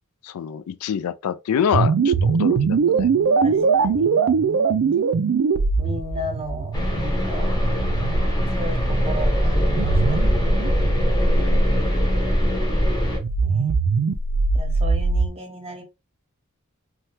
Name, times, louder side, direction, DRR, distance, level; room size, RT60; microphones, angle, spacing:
voice 1, 0.2-3.1 11.2-11.7, left 8 dB, 80° left, 0.3 m, -26 dB
sound 1, 1.7-11.8 13.1-15.3, right 5 dB, 60° right, 0.4 m, -22 dB
voice 2, 3.4-4.1 5.8-7.5 8.5-10.5 11.4-11.5 12.5-12.6 13.4-13.8 14.5-15.8, equal, 25° right, 0.9 m, -34 dB
sound 2, 6.7-13.2, equal, 20° left, 0.9 m, -21 dB
2.8 x 2.3 x 3.2 m
head